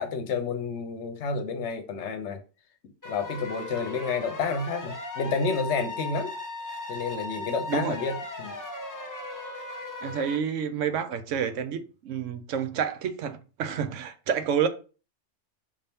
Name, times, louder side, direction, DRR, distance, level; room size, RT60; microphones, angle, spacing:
voice 1, 0.0-2.4 3.1-6.3 6.9-8.6, left 5 dB, 70° left, 0.9 m, -30 dB
sound 1, 3.0-10.4, left 2 dB, 20° left, 0.6 m, -37 dB
voice 2, 7.7-8.0 10.0-14.7, right 7 dB, 80° right, 1.0 m, -29 dB
5.3 x 2.8 x 3.4 m
omnidirectional pair, 1.3 m